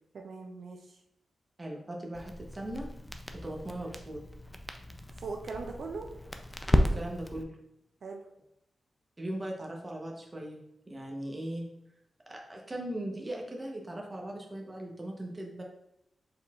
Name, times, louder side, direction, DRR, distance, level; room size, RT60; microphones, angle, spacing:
voice 1, 0.1-1.0 5.1-6.1 8.0-8.3, right 4 dB, 70° right, 2 dB, 0.4 m, -40 dB
voice 2, 1.6-2.9 3.3-4.2 6.7-7.5 9.2-10.6 10.9-11.6 12.3-15.6, right 1 dB, 25° right, 0 dB, 0.8 m, -39 dB
Crackle, 2.1-7.4, equal, 10° left, 0.4 m, -33 dB
4.7 x 3.8 x 2.4 m, 0.80 s
wide cardioid pair, 105°, 0 cm